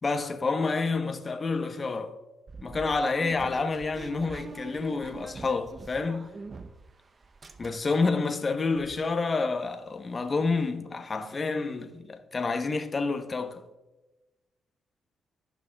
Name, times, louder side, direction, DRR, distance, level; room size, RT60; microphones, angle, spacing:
voice 1, 0.0-2.2 2.6-6.3 7.6-13.6, left 4 dB, 40° left, 1.1 m, -29 dB
sound 1, 2.5-6.9 7.2-8.1 8.5-8.6 8.7-9.0, right 3 dB, 40° right, 0.8 m, -43 dB
15.5 x 5.9 x 2.4 m
hypercardioid pair, 50°, 0 cm